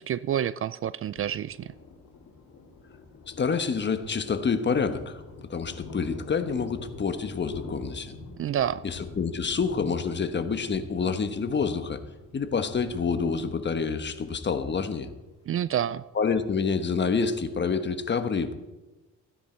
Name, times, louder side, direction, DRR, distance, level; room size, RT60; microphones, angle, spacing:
voice 1, 0.0-1.7 8.4-8.8 15.5-16.0, right 10 dB, 45° right, 18 dB, 0.4 m, -28 dB
Thunder, 1.2-16.0, left 3 dB, 70° left, 2.9 m, -46 dB
voice 2, 3.3-5.2 5.5-8.1 8.8-12.0 12.3-15.1 16.1-18.5, left 5 dB, 35° left, 9 dB, 1.3 m, -27 dB
15.5 x 10.0 x 4.5 m, 1.1 s
cardioid pair, 90°, 30 cm